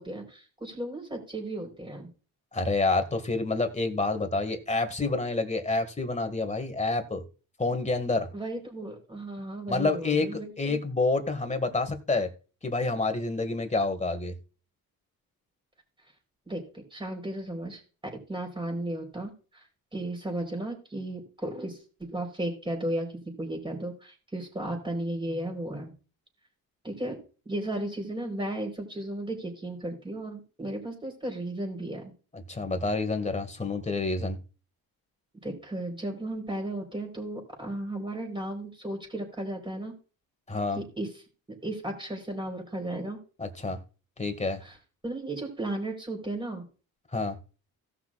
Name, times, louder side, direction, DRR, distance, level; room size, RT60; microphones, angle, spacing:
voice 1, 0.0-2.1 8.3-10.8 16.5-19.6 19.9-25.9 26.8-27.2 27.5-32.1 35.4-39.9 40.8-41.1 41.6-43.2 44.6-44.8 45.0-46.7, right 1 dB, 15° right, 2 dB, 4.1 m, -35 dB
voice 2, 2.5-7.2 7.6-8.3 9.7-12.3 12.6-14.3 32.3-34.4 40.5-40.8 43.4-43.8 44.2-44.6 47.1-47.4, left 3 dB, 20° left, 7 dB, 1.9 m, -28 dB
17.5 x 6.0 x 2.4 m, 0.35 s
cardioid pair, 100°, 36 cm